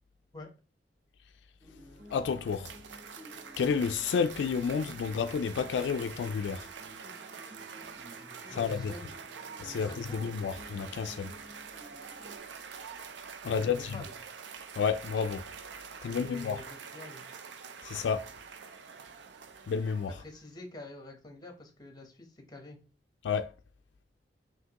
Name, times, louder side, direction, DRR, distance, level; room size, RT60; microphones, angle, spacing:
sound 1, 1.6-12.4, equal, 5° right, 0.7 m, -53 dB
Cheering / Applause, 1.8-20.4, right 6 dB, 80° right, 0.5 m, -46 dB
voice 1, 2.1-2.7 3.6-6.7 8.5-8.9 9.6-11.3 13.4-14.0 14.8-15.5 16.0-16.6 17.8-18.3 19.7-20.2 23.2-23.5, left 6 dB, 80° left, 0.3 m, -30 dB
voice 2, 8.5-9.1 9.7-10.3 13.5-14.2 16.1-17.3 20.1-22.8, left 2 dB, 25° left, 0.9 m, -47 dB
5.7 x 2.8 x 2.9 m
head